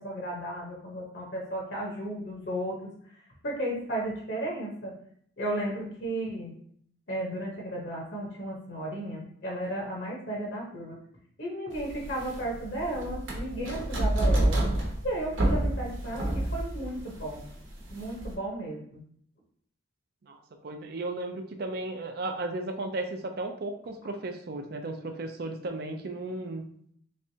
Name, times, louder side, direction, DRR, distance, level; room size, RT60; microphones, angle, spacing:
voice 1, 0.0-2.8 3.4-4.9 5.4-6.5 7.1-11.0 11.4-14.6 15.0-17.4 17.9-19.0, right 1 dB, 60° left, -2 dB, 0.9 m, -34 dB
sound 1, 11.7-18.3, right 1 dB, 80° right, 0.9 m, -29 dB
voice 2, 20.2-26.7, right 2 dB, 50° right, 5 dB, 0.4 m, -35 dB
3.5 x 3.1 x 2.7 m, 0.63 s
head